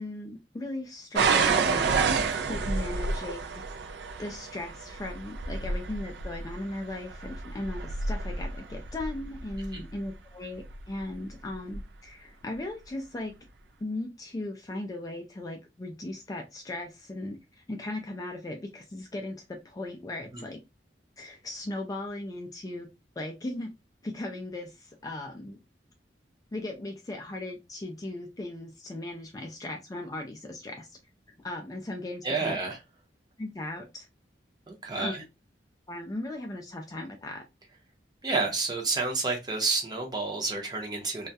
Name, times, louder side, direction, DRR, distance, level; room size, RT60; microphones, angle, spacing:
voice 1, 0.0-2.1 2.5-3.4 4.2-13.3 13.8-17.4 17.7-20.6 21.2-22.9 23.2-23.7 24.0-25.6 26.5-30.9 31.4-32.6 33.4-34.1 35.0-35.2 35.9-37.4, left 2 dB, 20° left, 0.3 m, -37 dB
sound 1, 1.2-10.0 10.7-11.1 11.7-11.8, right 4 dB, 65° right, 0.3 m, -29 dB
voice 2, 32.2-32.8 34.7-35.2 38.2-41.3, right 3 dB, 25° right, 0.6 m, -30 dB
2.2 x 2.1 x 2.6 m
head